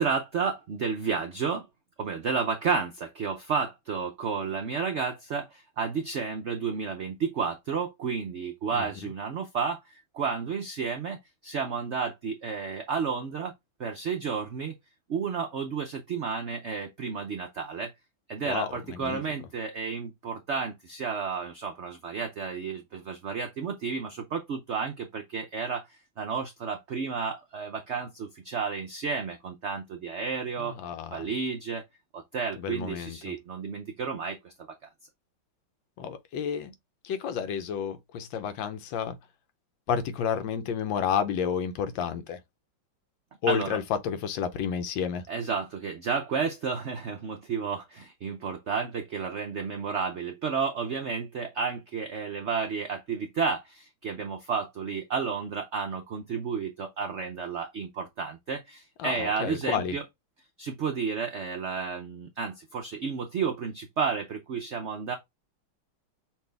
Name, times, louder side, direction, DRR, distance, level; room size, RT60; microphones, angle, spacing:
voice 1, 0.0-1.7 2.0-11.2 11.4-13.5 13.8-14.7 15.1-17.9 18.3-25.8 26.2-30.7 31.1-31.8 32.1-34.5 43.5-43.8 45.3-60.0 60.6-65.1, right 5 dB, 85° right, 0.6 m, -31 dB
voice 2, 8.7-9.1 18.4-19.2 30.6-31.3 32.6-33.3 36.0-36.7 37.0-39.2 39.9-42.4 43.4-45.3 59.0-59.9, left 7 dB, 80° left, 1.4 m, -31 dB
5.8 x 2.7 x 3.3 m
omnidirectional pair, 2.1 m